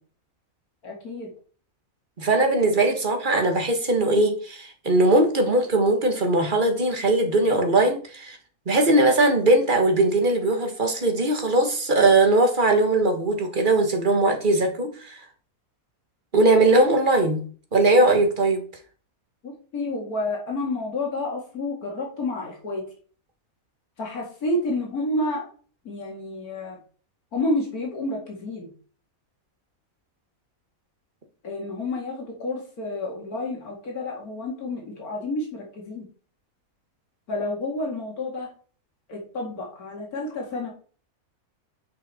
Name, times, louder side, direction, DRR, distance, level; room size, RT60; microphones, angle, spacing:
voice 1, 0.8-1.3 19.4-22.8 24.0-25.5 25.8-26.8 27.3-28.7 31.4-36.0 37.3-38.5 39.1-40.7, left 2 dB, 90° left, -1 dB, 2.6 m, -30 dB
voice 2, 2.2-8.4 8.7-15.2 16.3-17.4 17.7-18.6, right 2 dB, 35° right, 4 dB, 1.6 m, -20 dB
9.8 x 5.3 x 4.3 m, 0.42 s
omnidirectional pair, 1.5 m